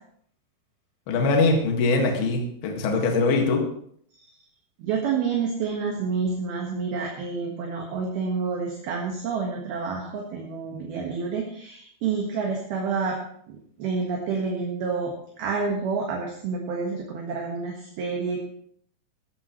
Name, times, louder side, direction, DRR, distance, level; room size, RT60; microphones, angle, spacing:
voice 1, 1.1-3.6, left 3 dB, 60° left, 1 dB, 3.5 m, -22 dB
voice 2, 4.8-13.2 13.5-15.1 15.4-18.4, right 5 dB, 60° right, 0 dB, 3.0 m, -28 dB
14.5 x 14.5 x 3.2 m, 0.65 s
omnidirectional pair, 5.8 m